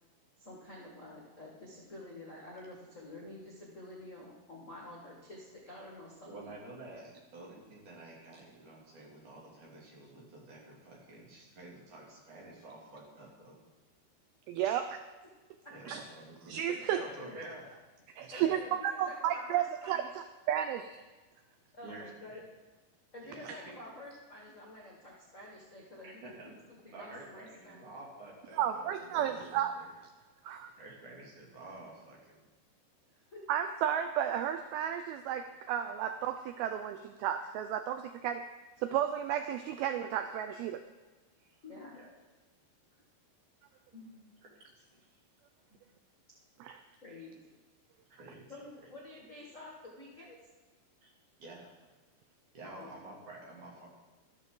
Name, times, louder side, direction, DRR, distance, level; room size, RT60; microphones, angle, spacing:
voice 1, 0.4-6.5 14.6-14.7 15.6-15.8 16.7-17.3 18.3-20.1 21.7-22.4 23.1-27.9 33.3-33.4 41.6-42.0 43.9-44.3 47.0-47.6 48.5-50.4 52.6-52.9, left 1 dB, 75° left, -3 dB, 0.7 m, -49 dB
voice 2, 6.3-13.6 15.7-16.6 16.9-17.7 18.2-18.6 21.8-22.4 23.2-23.7 26.0-26.5 26.9-29.9 30.8-32.4 41.9-42.1 44.8-45.0 48.1-48.6 51.0-51.1 51.4-51.7 52.5-53.9, right 2 dB, 50° right, -3 dB, 3.9 m, -50 dB
voice 3, 14.5-14.9 15.9-16.0 16.5-17.0 18.2-21.0 23.4-23.6 28.6-29.7 30.4-30.7 33.5-38.4 38.8-40.8 46.6-46.7, right 10 dB, 85° right, 8 dB, 2.1 m, -33 dB
13.5 x 13.0 x 3.9 m, 1.3 s
omnidirectional pair, 5.0 m